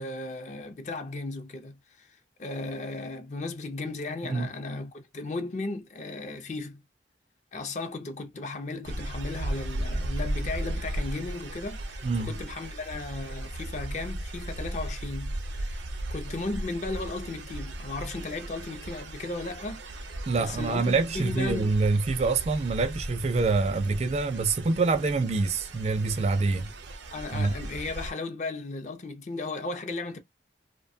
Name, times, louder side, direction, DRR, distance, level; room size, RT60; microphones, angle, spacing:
voice 1, 0.0-6.8 7.5-15.8 16.1-19.8 20.3-21.7 27.1-30.2, left 3 dB, 40° left, 0.5 m, -35 dB
sound 1, 8.8-28.1, right 1 dB, 80° right, 0.6 m, -36 dB
voice 2, 20.3-26.7 27.3-27.5, right 3 dB, 35° right, 0.3 m, -26 dB
2.6 x 2.2 x 2.6 m
head